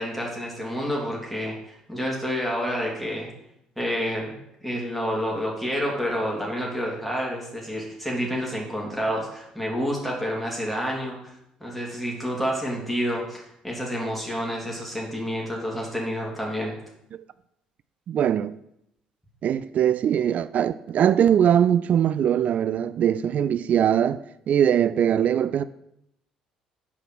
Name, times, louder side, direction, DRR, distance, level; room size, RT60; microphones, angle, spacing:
voice 1, 0.0-3.3 3.8-4.4 4.6-11.3 11.6-16.7, equal, ahead, 2.7 m, -29 dB
voice 2, 18.1-18.5 19.4-24.2 24.5-25.6, right 9 dB, 50° right, 0.3 m, -21 dB
7.2 x 4.8 x 6.1 m
hypercardioid pair, 55°, 3 cm